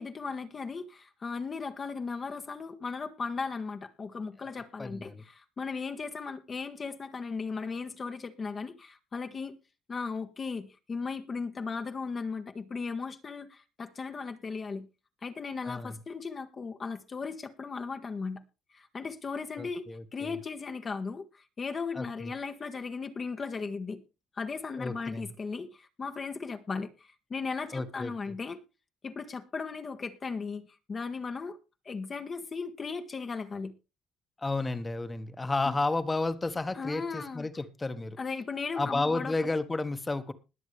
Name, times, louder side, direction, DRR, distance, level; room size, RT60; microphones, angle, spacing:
voice 1, 0.0-9.6 9.9-14.9 15.2-18.4 18.7-24.0 24.3-28.6 29.0-31.6 31.8-33.7 35.6-35.7 36.7-37.5 38.2-39.5, left 4 dB, 35° left, 1.4 m, -37 dB
voice 2, 4.8-5.2 15.6-15.9 19.6-20.3 21.9-22.3 24.8-25.3 27.7-28.1 34.4-38.2 38.8-40.3, left 3 dB, 20° left, 1.4 m, -32 dB
21.0 x 7.2 x 3.3 m
cardioid pair, 95°, 0 cm